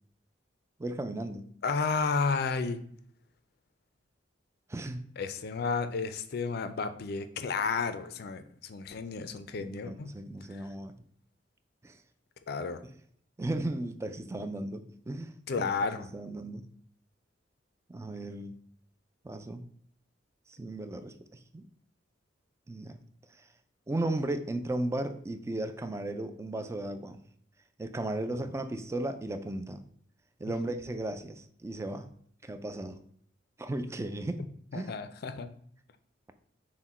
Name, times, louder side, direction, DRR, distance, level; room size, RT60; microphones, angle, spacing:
voice 1, 0.8-1.5 4.7-5.0 9.6-10.9 11.8-12.0 12.8-12.9 13.4-15.7 16.1-16.7 17.9-18.6 19.2-19.7 20.5-21.1 21.5-21.6 22.7-23.0 23.9-27.2 27.8-29.8 30.4-32.1 32.4-33.0 33.6-34.4 34.7-34.9, right 1 dB, 15° right, 9 dB, 0.3 m, -35 dB
voice 2, 1.6-2.8 5.2-10.1 10.5-10.7 12.5-12.8 15.5-16.1 28.3-28.4 34.7-35.5, left 4 dB, 55° left, 10 dB, 0.4 m, -32 dB
5.9 x 2.1 x 4.1 m, 0.64 s
head